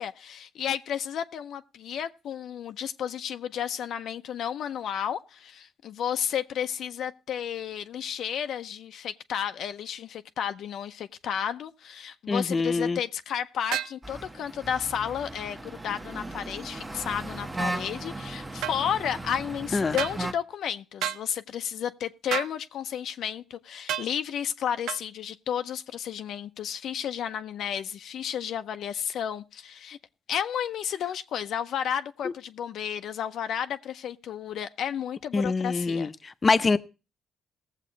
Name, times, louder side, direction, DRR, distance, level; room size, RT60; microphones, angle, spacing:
voice 1, 0.0-30.0 30.3-36.1, left 9 dB, 70° left, 0.6 m, -32 dB
voice 2, 12.3-13.0 19.7-20.0 35.3-36.8, left 4 dB, 30° left, 0.7 m, -25 dB
sound 1, 13.7-14.0 18.6-18.8 20.0-20.2 21.0-21.2 22.3-22.6 23.9-24.1 24.9-25.0, right 11 dB, 85° right, 0.5 m, -30 dB
sound 2, 14.0-20.3, right 2 dB, 15° right, 1.0 m, -37 dB
18.0 x 7.4 x 3.9 m
cardioid pair, 90°, 0 cm